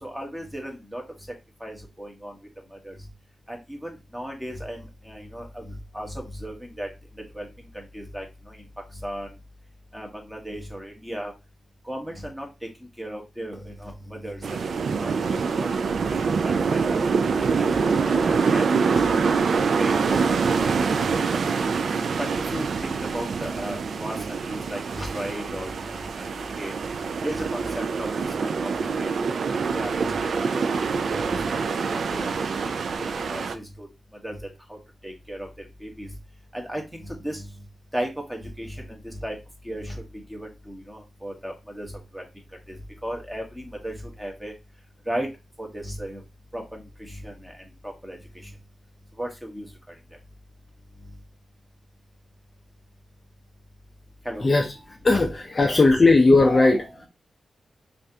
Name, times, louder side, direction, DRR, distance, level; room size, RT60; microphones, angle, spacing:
voice 1, 0.0-1.0 1.6-2.3 2.7-3.0 3.5-6.9 7.3-8.6 8.9-9.3 9.9-11.3 11.8-12.5 13.0-14.7 15.0-15.7 16.1-17.0 17.4-19.0 19.6-21.7 22.2-26.7 27.2-29.2 29.7-30.2 30.5-31.4 31.9-33.9 34.2-34.4 34.7-34.8 35.0-36.1 36.5-37.5 37.9-39.3 39.6-42.2 42.7-42.8 43.0-44.5 45.1-45.3 45.6-46.2 46.5-48.5 49.2-49.9 54.2-54.5 55.1-55.2, equal, 5° right, 1.1 m, -36 dB
sound 1, 14.4-33.5, right 5 dB, 65° right, 0.4 m, -25 dB
voice 2, 54.4-57.1, left 3 dB, 30° left, 0.5 m, -18 dB
5.3 x 2.5 x 2.7 m
wide cardioid pair, 145°, 0 cm